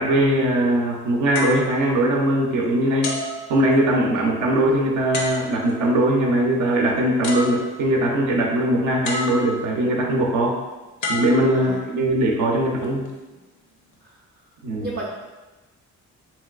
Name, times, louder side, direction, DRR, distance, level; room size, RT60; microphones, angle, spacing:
voice 1, 0.0-3.1 3.5-10.6 11.1-13.0 14.6-14.9, right 1 dB, 75° right, 0 dB, 0.6 m, -20 dB
sound 1, 1.3-2.5 3.0-4.2 5.1-5.8 6.9-7.0 7.2-8.1 9.0-9.8 11.0-12.1 12.8-13.1, left 2 dB, 70° left, 0.6 m, -31 dB
voice 2, 12.5-12.9 14.0-14.1 14.8-15.1, right 3 dB, 30° right, -4 dB, 0.4 m, -34 dB
3.1 x 2.8 x 2.3 m, 1.1 s
cardioid pair, 90°, 30 cm